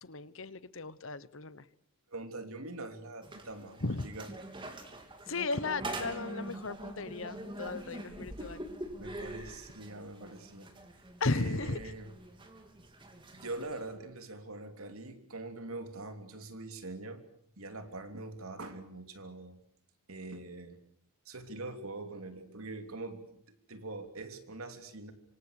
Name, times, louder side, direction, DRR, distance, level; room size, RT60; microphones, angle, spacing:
voice 1, 0.0-1.7 3.8-4.1 5.3-8.6 11.2-11.8, left 3 dB, 60° left, 17 dB, 1.1 m, -35 dB
voice 2, 2.1-4.3 9.0-10.7 11.3-12.1 13.3-17.2 17.6-19.6 20.1-20.8 21.2-25.1, right 2 dB, 80° right, 7 dB, 3.3 m, -43 dB
sound 1, 3.2-13.9, right 1 dB, 25° right, 3.2 m, -44 dB
26.5 x 25.5 x 6.6 m, 0.69 s
head